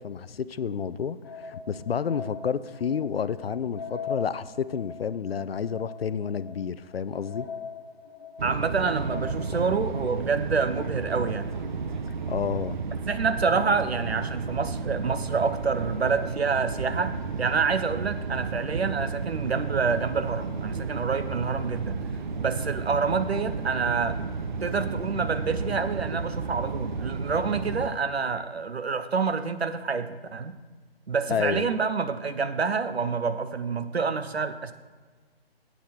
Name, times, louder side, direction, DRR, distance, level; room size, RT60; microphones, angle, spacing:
voice 1, 0.0-7.5 12.3-12.8 31.3-31.7, left 7 dB, 70° left, 15 dB, 0.5 m, -30 dB
sound 1, 1.2-12.1 12.5-12.6 13.2-13.7, left 5 dB, 20° left, 0.7 m, -41 dB
sound 2, 8.4-27.9, right 4 dB, 50° right, 0.7 m, -32 dB
voice 2, 8.4-11.5 13.1-17.1 17.4-22.0 22.4-24.2 24.6-30.6 31.1-34.7, right 5 dB, 80° right, 11 dB, 0.9 m, -27 dB
9.2 x 8.4 x 4.2 m, 1.4 s
figure-of-eight pair, 150°, 31 cm